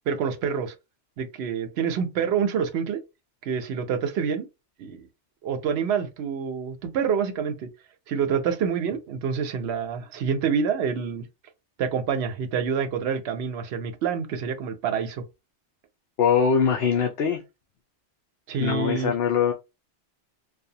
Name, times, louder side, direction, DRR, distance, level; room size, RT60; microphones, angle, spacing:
voice 1, 0.1-0.7 1.2-3.0 3.4-4.5 4.8-5.0 5.4-7.7 8.1-11.2 11.8-15.2 18.5-19.1, right 7 dB, 70° right, 0.8 m, -27 dB
voice 2, 16.2-17.4 18.6-19.5, left 7 dB, 65° left, 0.7 m, -22 dB
2.7 x 2.2 x 2.6 m
omnidirectional pair, 1.2 m